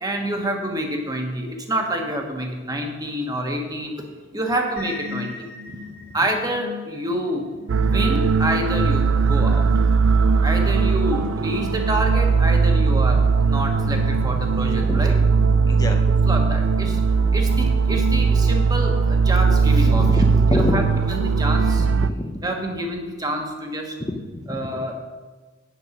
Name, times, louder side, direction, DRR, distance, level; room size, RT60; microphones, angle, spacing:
voice 1, 0.0-4.0 4.3-5.5 6.1-7.4 7.8-9.7 10.4-15.1 16.2-17.0 17.3-20.1 20.5-20.8 21.1-21.9 22.4-23.9 24.5-24.9, right 1 dB, 20° right, 2 dB, 1.3 m, -27 dB
sound 1, 4.8-16.4, left 5 dB, 45° left, 2.0 m, -40 dB
sound 2, 7.7-22.1, right 4 dB, 65° right, 0.4 m, -19 dB
voice 2, 15.7-16.0 19.9-20.8 21.8-22.3 24.0-24.6, left 1 dB, 20° left, 4 dB, 0.7 m, -27 dB
9.2 x 6.9 x 6.0 m, 1.3 s
head